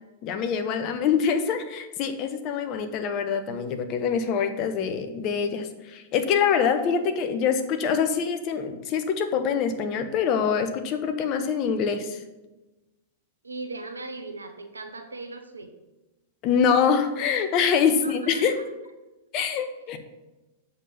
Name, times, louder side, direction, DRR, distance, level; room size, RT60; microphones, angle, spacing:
voice 1, 0.2-12.2 16.4-18.5 19.3-20.0, left 6 dB, 40° left, 8 dB, 0.9 m, -25 dB
voice 2, 13.4-15.7 17.9-18.6, right 3 dB, 85° right, 7 dB, 0.8 m, -38 dB
7.4 x 4.0 x 6.6 m, 1.1 s
figure-of-eight pair, 95°, 0 cm